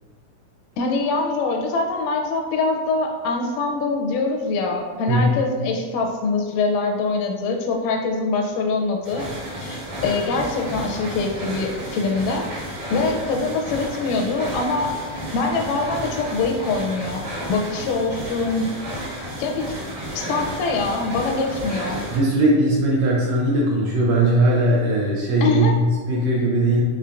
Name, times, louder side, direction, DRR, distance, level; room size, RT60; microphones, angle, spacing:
voice 1, 0.8-12.5 12.9-15.0 15.3-18.7 19.4-19.8 20.1-22.0 25.4-25.7, left 3 dB, 90° left, 2 dB, 2.1 m, -24 dB
sound 1, 9.0-22.2, equal, 55° right, 2.0 m, -32 dB
voice 2, 22.1-26.8, right 1 dB, 75° right, -4 dB, 1.6 m, -19 dB
5.6 x 3.5 x 2.5 m, 1.4 s
omnidirectional pair, 3.7 m